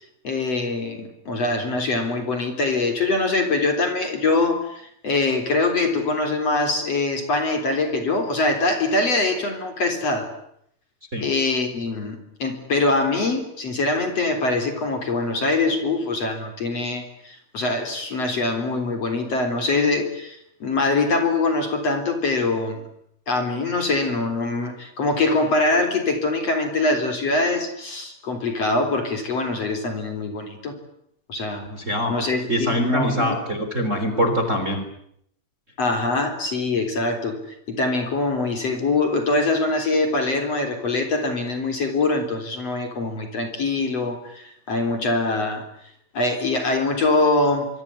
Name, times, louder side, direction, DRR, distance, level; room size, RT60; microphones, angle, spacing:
voice 1, 0.2-10.3 11.2-22.8 23.3-30.7 31.3-31.7 32.1-33.4 35.8-45.6 46.1-47.7, left 3 dB, 40° left, 5 dB, 4.5 m, -23 dB
voice 2, 31.7-32.1 32.5-34.8, equal, 20° right, 7 dB, 3.5 m, -23 dB
25.0 x 24.0 x 9.8 m, 0.73 s
omnidirectional pair, 4.7 m